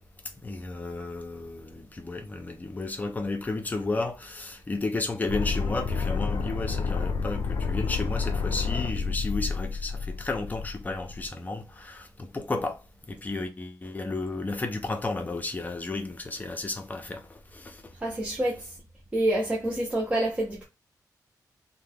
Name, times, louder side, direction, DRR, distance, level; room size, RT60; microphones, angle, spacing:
voice 1, 0.4-12.8 13.1-17.8, left 3 dB, 25° left, 0.6 m, -33 dB
sound 1, 5.3-11.3, left 5 dB, 85° left, 0.5 m, -30 dB
voice 2, 18.0-18.7 19.1-20.6, right 1 dB, 20° right, 0.6 m, -27 dB
2.9 x 2.2 x 3.5 m
wide cardioid pair, 140°, 7 cm